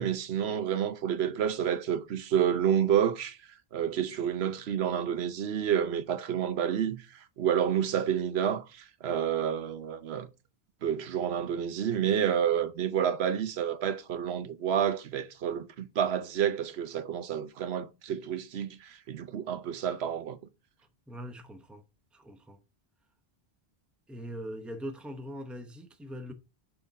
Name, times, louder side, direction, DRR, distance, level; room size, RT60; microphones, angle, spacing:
voice 1, 0.0-3.4 3.7-10.3 10.8-20.4, right 9 dB, 85° right, 1.0 m, -29 dB
voice 2, 21.1-21.8 22.1-22.6 24.1-26.3, equal, ahead, 0.6 m, -41 dB
6.3 x 3.7 x 4.1 m
omnidirectional pair, 1.0 m